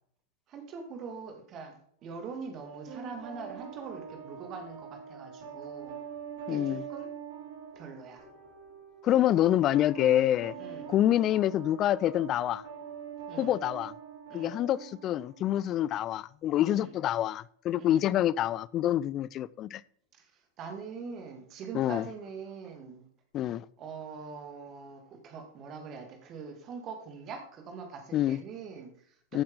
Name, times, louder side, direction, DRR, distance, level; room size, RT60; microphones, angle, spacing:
voice 1, 0.5-6.0 6.5-7.1 7.8-8.2 10.5-10.9 13.3-13.5 14.3-14.6 16.7-16.9 17.8-18.0 20.1-23.1 23.8-29.4, right 5 dB, 35° right, 2.3 m, -43 dB
sound 1, 2.6-15.7, right 7 dB, 50° right, 3.5 m, -44 dB
voice 2, 6.5-6.8 9.0-10.5 10.9-12.6 13.4-13.9 14.3-19.8 21.7-22.0 23.3-23.6 28.1-28.4 29.3-29.4, left 12 dB, 35° left, 0.4 m, -27 dB
14.5 x 8.6 x 3.8 m
figure-of-eight pair, 90°, 0 cm